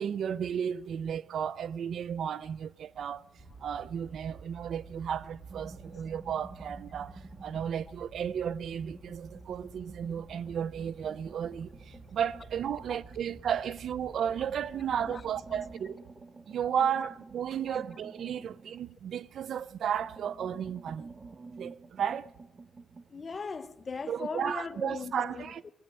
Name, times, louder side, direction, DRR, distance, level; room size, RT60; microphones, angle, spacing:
voice 1, 0.0-3.3 3.6-16.0 16.5-21.1 21.5-22.3 24.1-25.6, right 8 dB, 65° right, 0.5 m, -34 dB
sound 1, 3.4-15.8, right 3 dB, ahead, 2.0 m, -51 dB
sound 2, 5.5-8.0 8.3-13.9 14.4-19.4 19.7-23.1, right 3 dB, 35° right, 1.2 m, -51 dB
voice 2, 23.1-25.7, left 4 dB, 35° left, 0.7 m, -39 dB
17.5 x 8.6 x 9.0 m
cardioid pair, 95°, 0 cm